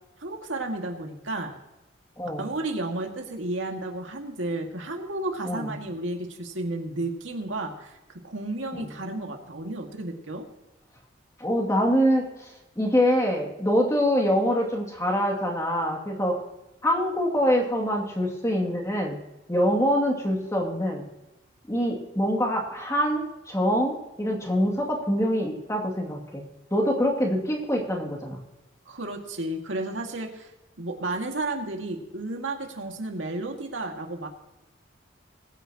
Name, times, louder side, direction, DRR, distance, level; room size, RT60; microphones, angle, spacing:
voice 1, 0.2-1.5 2.4-10.5 28.9-30.5 30.8-34.3, right 2 dB, 80° right, 2 dB, 2.1 m, -32 dB
voice 2, 11.4-12.3 12.8-16.4 16.8-19.2 19.5-21.0 21.7-26.4 26.7-28.4, equal, 15° left, -1 dB, 2.4 m, -24 dB
21.5 x 10.0 x 2.9 m, 1.0 s
head